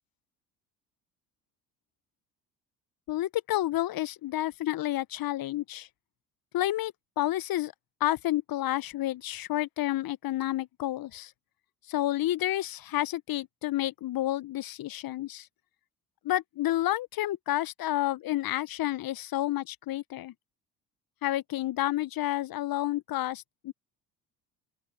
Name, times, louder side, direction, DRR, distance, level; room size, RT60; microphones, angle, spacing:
voice 1, 3.1-5.9 6.5-7.7 8.0-11.3 11.9-15.5 16.2-20.3 21.2-23.7, left 14 dB, 45° left, 1.0 m, -30 dB
open air
hypercardioid pair, 55°, 47 cm